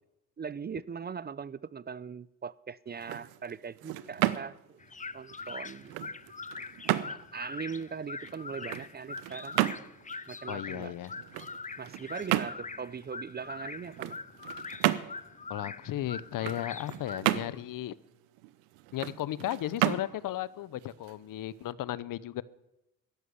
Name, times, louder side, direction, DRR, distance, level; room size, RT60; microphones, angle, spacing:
voice 1, 0.4-4.8 5.1-6.0 6.9-9.6 10.3-10.9 11.8-14.2, right 6 dB, 30° right, 0.5 m, -40 dB
sound 1, 2.9-21.7, right 16 dB, 90° right, 0.8 m, -35 dB
sound 2, 4.8-17.2, left 4 dB, 20° left, 0.8 m, -43 dB
voice 2, 10.5-11.1 15.5-17.9 18.9-22.4, left 13 dB, 65° left, 0.8 m, -35 dB
13.0 x 11.0 x 8.3 m
supercardioid pair, 60°, 36 cm